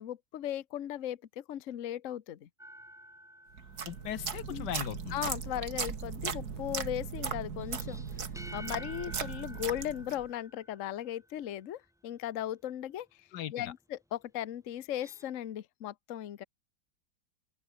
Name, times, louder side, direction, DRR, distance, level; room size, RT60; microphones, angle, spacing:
voice 1, 0.0-2.5 4.5-4.7 5.1-8.0 8.5-16.4, left 11 dB, 55° left, 1.1 m, -37 dB
sound 1, 2.6-4.6 7.6-11.2 14.8-15.3, equal, ahead, 1.8 m, -51 dB
sound 2, 3.6-10.3, right 6 dB, 60° right, 2.5 m, -38 dB
voice 2, 3.9-5.2 13.3-13.5, left 11 dB, 75° left, 1.4 m, -38 dB
open air
omnidirectional pair, 1.9 m